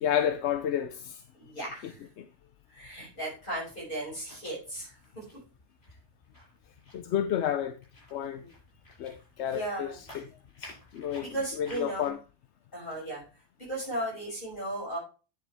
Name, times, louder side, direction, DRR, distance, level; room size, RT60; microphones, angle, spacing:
voice 1, 0.0-1.2 1.8-1.9 2.2-2.3 6.9-7.8 8.1-8.4 9.0-10.2 10.6-11.3 11.6-12.2, left 9 dB, 85° left, 0.9 m, -31 dB
voice 2, 1.4-2.0 2.7-5.2 8.4-8.5 9.5-10.0 11.2-12.1 12.7-13.2 13.6-15.0, right 1 dB, 50° left, 6.3 m, -36 dB
sound 1, 2.8-12.1, left 1 dB, 65° left, 6.6 m, -54 dB
10.0 x 7.3 x 3.4 m
omnidirectional pair, 1.1 m